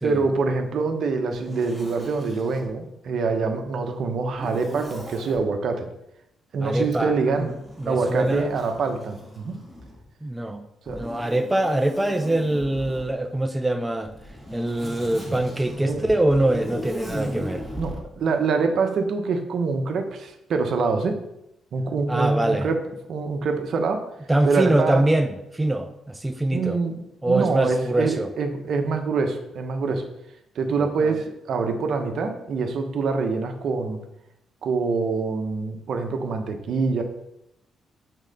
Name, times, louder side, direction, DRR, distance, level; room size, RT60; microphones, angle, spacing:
voice 1, 0.0-5.9 6.5-7.5 7.8-9.6 10.9-11.0 15.9-16.0 17.8-21.2 21.7-22.8 23.1-24.1 24.4-25.0 26.5-27.0 27.3-30.1 30.5-34.0 34.6-37.0, right 4 dB, 65° right, 0.9 m, -25 dB
Zipper (clothing), 1.3-2.7 4.3-5.4 6.8-10.1 10.9-13.1 14.1-18.0, equal, 5° left, 2.4 m, -37 dB
voice 2, 6.6-7.2 7.4-8.5 10.2-10.6 10.9-14.1 14.5-17.7 22.1-22.7 24.3-26.8 27.2-28.3 31.0-31.2, right 1 dB, 10° right, 0.4 m, -23 dB
6.3 x 3.7 x 5.3 m
cardioid pair, 90°, 0 cm